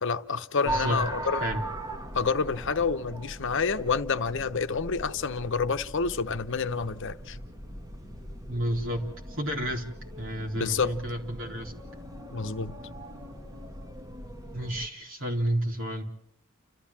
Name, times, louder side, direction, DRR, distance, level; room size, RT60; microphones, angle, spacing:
voice 1, 0.0-1.4 2.1-7.4 10.6-10.9 12.3-12.8, left 5 dB, 60° left, 1.0 m, -28 dB
voice 2, 0.6-1.0 1.3-1.6 8.5-11.7 14.5-16.0, right 1 dB, 60° right, 4.0 m, -31 dB
sound 1, 0.7-14.9, right 1 dB, 15° right, 1.6 m, -39 dB
30.0 x 14.0 x 7.4 m
head